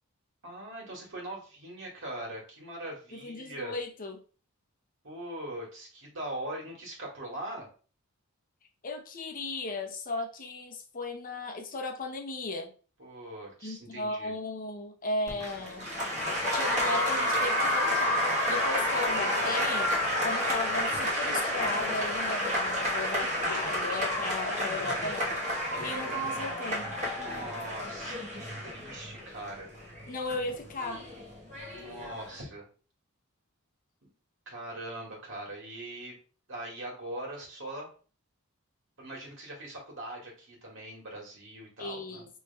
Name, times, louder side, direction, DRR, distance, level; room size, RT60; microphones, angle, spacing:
voice 1, 0.4-3.8 5.0-7.7 13.0-14.3 27.2-29.7 31.8-32.6 34.0-34.1 34.5-36.2 36.5-37.9 39.0-42.3, right 1 dB, 60° right, -2 dB, 1.7 m, -41 dB
voice 2, 3.1-4.2 8.8-12.7 13.6-15.9 16.5-19.9 20.2-25.4 25.8-26.9 30.1-31.0 41.8-42.3, left 2 dB, 40° left, 3 dB, 0.7 m, -36 dB
Applause, 15.3-32.4, left 1 dB, 35° right, 1.2 m, -30 dB
5.0 x 3.2 x 2.2 m, 0.37 s
head